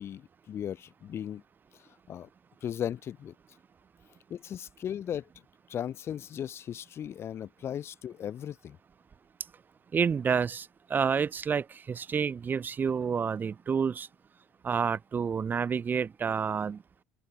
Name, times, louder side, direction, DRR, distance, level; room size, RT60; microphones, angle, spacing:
voice 1, 0.0-1.4 1.8-2.3 2.6-3.3 4.3-5.3 5.7-8.8, left 9 dB, 40° left, 2.8 m, -37 dB
voice 2, 9.9-14.1 14.6-16.8, right 6 dB, 30° right, 1.2 m, -29 dB
open air
figure-of-eight pair, 65°, 6 cm